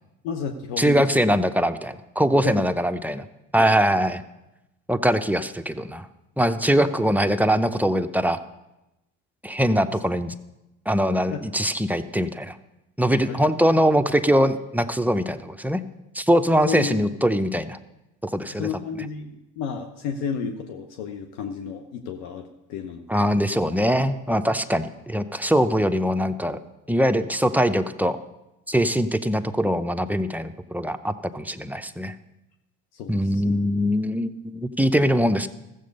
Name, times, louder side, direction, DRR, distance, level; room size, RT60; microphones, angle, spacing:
voice 1, 0.2-1.3 2.4-2.5 3.6-3.7 11.3-11.4 13.3-13.5 16.6-17.1 18.6-23.3 32.9-33.6, left 6 dB, 85° left, 5 dB, 0.9 m, -32 dB
voice 2, 0.8-3.3 3.5-4.2 4.9-6.1 6.4-8.4 9.4-10.3 10.9-12.6 13.0-15.8 16.1-17.8 18.2-18.7 23.1-26.6 26.9-28.2 28.7-32.1 33.1-35.5, equal, 5° right, 8 dB, 0.6 m, -22 dB
14.0 x 7.6 x 5.3 m, 0.95 s
supercardioid pair, 70°, 38 cm